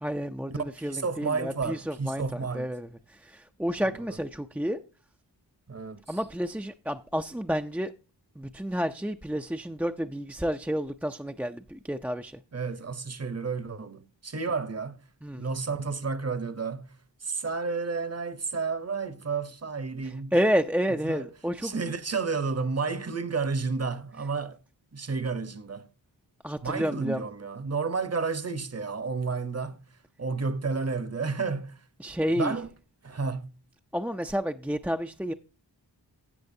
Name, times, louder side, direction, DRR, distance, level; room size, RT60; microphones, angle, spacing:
voice 1, 0.0-4.8 6.1-7.9 8.4-12.4 15.2-15.4 20.0-21.8 26.4-27.2 32.0-32.6 33.9-35.3, equal, 5° right, 0.3 m, -30 dB
voice 2, 0.8-2.7 5.7-6.2 12.5-15.0 15.3-16.9 17.2-20.3 21.0-21.3 21.6-24.6 24.9-25.9 26.6-29.8 30.2-31.8 32.3-32.7 33.0-33.5, right 4 dB, 35° right, 0.8 m, -31 dB
13.0 x 7.8 x 2.7 m
wide cardioid pair, 65°, 44 cm